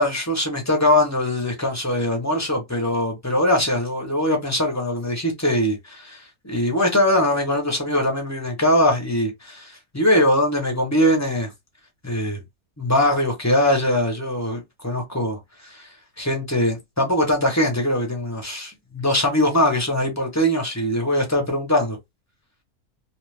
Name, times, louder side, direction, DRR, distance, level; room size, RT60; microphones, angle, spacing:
voice 1, 0.0-11.5 12.0-12.4 12.8-22.0, left 1 dB, 15° left, 0.6 m, -22 dB
2.6 x 2.3 x 3.3 m
omnidirectional pair, 1.6 m